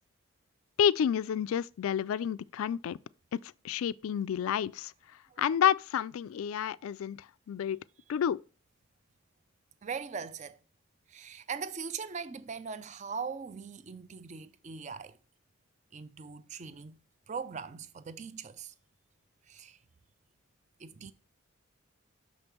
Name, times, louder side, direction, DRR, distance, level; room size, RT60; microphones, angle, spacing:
voice 1, 0.8-3.0 3.3-3.4 3.6-4.9 5.4-7.8 8.1-8.4, left 8 dB, 75° left, 0.3 m, -29 dB
voice 2, 9.8-10.6 11.1-15.2 15.9-17.0 17.3-18.7 19.4-19.8 20.8-21.1, right 5 dB, 35° right, 0.4 m, -40 dB
6.3 x 5.2 x 4.4 m
head